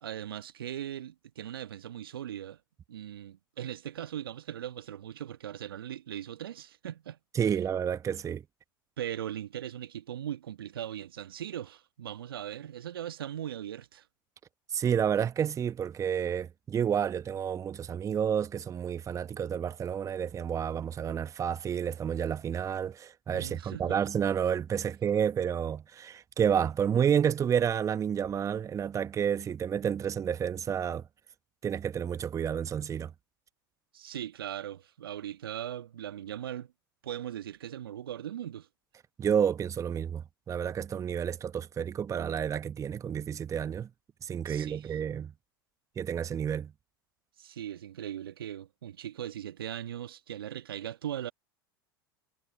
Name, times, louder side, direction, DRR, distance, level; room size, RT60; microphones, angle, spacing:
voice 1, 0.0-2.6 2.9-7.5 9.0-14.0 23.3-24.0 33.9-36.7 37.0-38.7 44.4-44.9 47.4-51.3, right 11 dB, 75° right, 1.3 m, -39 dB
voice 2, 7.3-8.4 14.7-31.0 31.6-33.1 39.2-43.9 44.2-45.3 46.0-46.7, right 8 dB, 25° right, 0.9 m, -30 dB
figure-of-eight pair, 85°, 12 cm